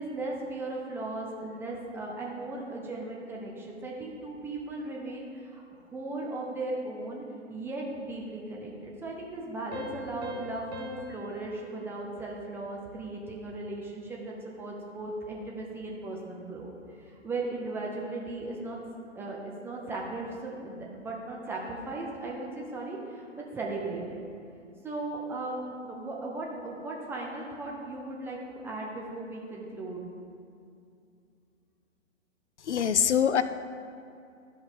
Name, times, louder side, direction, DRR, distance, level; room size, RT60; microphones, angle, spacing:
voice 1, 0.0-5.6 5.9-16.7 17.0-18.8 19.1-24.2 24.8-30.1, right 2 dB, 5° right, -2 dB, 0.6 m, -37 dB
sound 1, 9.7-13.0, left 1 dB, 30° right, 1.2 m, -44 dB
voice 2, 32.7-33.4, left 8 dB, 65° left, 12 dB, 0.5 m, -23 dB
12.5 x 5.2 x 5.1 m, 2.5 s
figure-of-eight pair, 120°, 37 cm